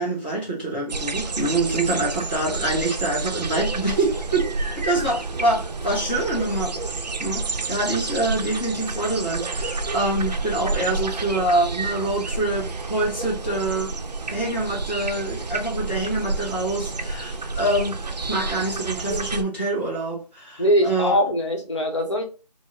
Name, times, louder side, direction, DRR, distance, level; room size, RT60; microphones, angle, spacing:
voice 1, 0.0-6.7 7.2-13.9 14.3-21.2, right 2 dB, 15° left, 0.6 m, -25 dB
sound 1, 0.9-19.4, right 3 dB, 75° right, 0.5 m, -29 dB
voice 2, 20.6-22.2, equal, 45° left, 0.9 m, -21 dB
4.6 x 2.0 x 2.6 m
figure-of-eight pair, 170°, 21 cm